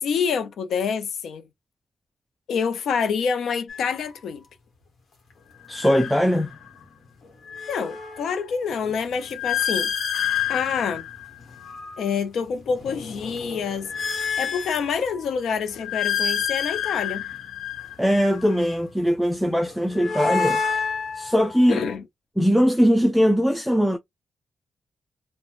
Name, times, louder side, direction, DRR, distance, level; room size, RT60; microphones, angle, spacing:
voice 1, 0.0-1.5 2.5-4.4 7.7-9.9 10.5-11.1 12.0-13.9 14.4-17.2 21.7-22.0, left 6 dB, 80° left, 0.5 m, -27 dB
sound 1, 3.7-3.9 5.6-6.8 7.2-12.1 12.6-15.3 15.7-18.7 19.7-21.9, left 7 dB, 60° left, 1.0 m, -29 dB
voice 2, 5.7-6.5 18.0-20.6 21.2-21.8 22.4-24.0, equal, ahead, 0.3 m, -20 dB
3.1 x 2.1 x 2.4 m
wide cardioid pair, 125°, 0 cm